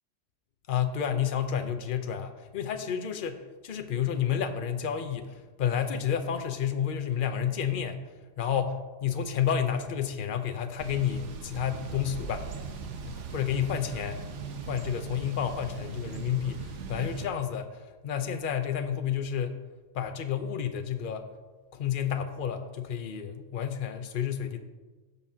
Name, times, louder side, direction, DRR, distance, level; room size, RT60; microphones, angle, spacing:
voice 1, 0.7-8.0 8.4-12.7 13.0-14.2 14.6-19.6 19.9-21.3 21.7-24.6, left 8 dB, 50° left, 7 dB, 0.9 m, -30 dB
Thunder / Bicycle, 10.8-17.3, right 5 dB, 80° right, 1.2 m, -39 dB
16.5 x 7.0 x 2.8 m, 1.3 s
omnidirectional pair, 1.2 m